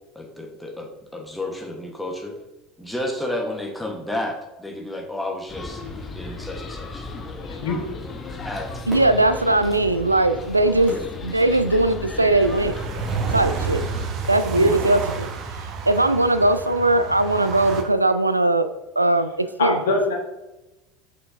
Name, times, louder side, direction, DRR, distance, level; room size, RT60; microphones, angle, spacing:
voice 1, 0.1-2.4 2.8-5.8 6.2-7.0 8.4-8.8 10.9-11.1, left 1 dB, 5° left, 1 dB, 1.1 m, -31 dB
sound 1, 5.5-14.1, left 3 dB, 25° left, 0.8 m, -35 dB
voice 2, 7.5-7.8 14.5-14.7 19.6-20.1, left 3 dB, 70° left, 1 dB, 1.3 m, -23 dB
Fireworks, 8.9-12.2 12.8-12.9, equal, 20° right, 2.2 m, -42 dB
voice 3, 8.9-10.9 11.2-12.8 13.3-13.9 14.3-15.3 15.9-18.7 19.0-19.8, right 2 dB, 90° right, 11 dB, 0.3 m, -19 dB
sound 2, 12.4-17.8, right 5 dB, 45° right, 0.8 m, -30 dB
6.4 x 5.7 x 2.6 m, 1.0 s
figure-of-eight pair, 70°, 0 cm